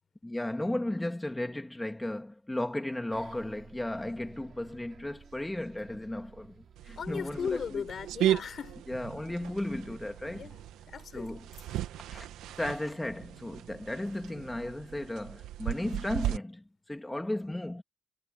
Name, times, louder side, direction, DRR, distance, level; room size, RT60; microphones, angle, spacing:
voice 1, 0.2-7.8 8.9-10.5 11.1-11.5 12.0-12.3 12.6-17.8, left 1 dB, 10° left, 2.6 m, -35 dB
Bus, 3.1-12.7, right 8 dB, 60° right, 5.7 m, -55 dB
sound 1, 6.8-16.4, right 12 dB, 90° right, 2.1 m, -36 dB
voice 2, 6.9-8.9 10.3-11.3, left 7 dB, 50° left, 7.1 m, -37 dB
cardioid pair, 90°, 0 cm